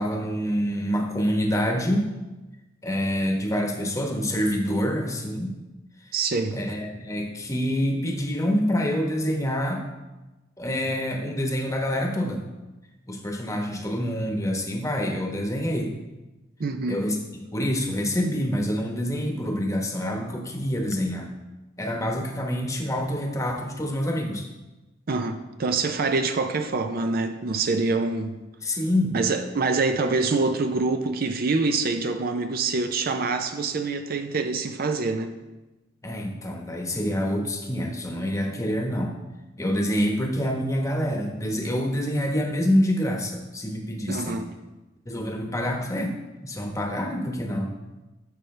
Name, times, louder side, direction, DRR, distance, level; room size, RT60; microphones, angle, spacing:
voice 1, 0.0-2.1 2.8-5.5 6.5-9.8 10.6-12.4 13.1-15.9 16.9-17.2 17.5-21.3 21.8-24.5 28.6-29.2 36.0-39.2 39.6-44.5 45.0-46.1 46.4-47.7, equal, 15° left, 1.1 m, -26 dB
voice 2, 6.1-6.6 16.6-17.0 25.1-28.3 29.1-35.3 44.1-44.5, right 3 dB, 50° right, 0.5 m, -25 dB
13.0 x 6.5 x 3.3 m
head